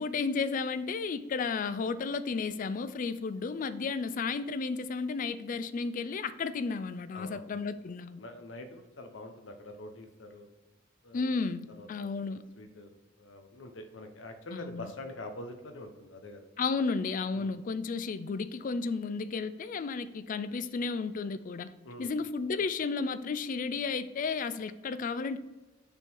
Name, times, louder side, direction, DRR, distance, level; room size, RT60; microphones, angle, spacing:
voice 1, 0.0-8.2 11.1-12.4 14.5-14.9 16.6-21.7 22.0-25.4, left 4 dB, 45° left, 13 dB, 0.3 m, -33 dB
voice 2, 7.1-7.5 8.2-10.5 11.0-11.5 11.8-11.9 12.1-12.9 13.2-16.5 17.3-17.6 21.8-22.1, left 1 dB, 90° left, 7 dB, 0.8 m, -45 dB
6.7 x 3.8 x 4.5 m, 1.2 s
head